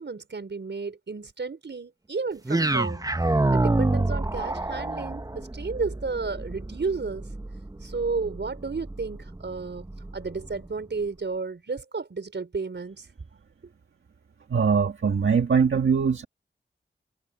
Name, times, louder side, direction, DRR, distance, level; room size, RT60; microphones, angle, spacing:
voice 1, 0.0-3.1 3.5-7.3 7.8-9.9 10.1-13.1 13.6-13.7, right 4 dB, 65° right, 5.1 m, -32 dB
sound 1, 2.5-10.7, right 2 dB, 20° right, 0.9 m, -28 dB
voice 2, 14.5-16.2, right 6 dB, 90° right, 1.6 m, -22 dB
cardioid pair, 50°, 19 cm